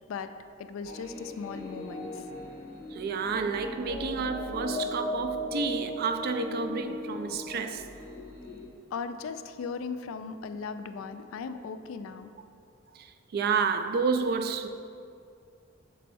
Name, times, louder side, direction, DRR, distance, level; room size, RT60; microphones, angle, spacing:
voice 1, 0.6-2.3 8.9-12.3, left 5 dB, 75° left, 0.3 m, -37 dB
sound 1, 0.8-8.6, left 1 dB, 45° left, 1.3 m, -38 dB
voice 2, 2.9-7.9 12.9-14.7, right 5 dB, 50° right, 0.3 m, -30 dB
6.8 x 3.1 x 4.5 m
head